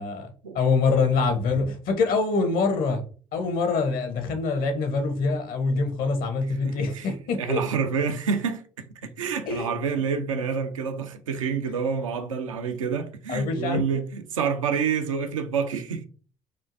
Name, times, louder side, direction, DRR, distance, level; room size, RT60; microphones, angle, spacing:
voice 1, 0.5-3.0 3.3-7.6 9.5-9.7 13.3-13.8, left 4 dB, 60° left, 0.9 m, -25 dB
voice 2, 6.6-16.0, right 6 dB, 90° right, 0.4 m, -28 dB
4.3 x 2.5 x 2.5 m
hypercardioid pair, 50°, 16 cm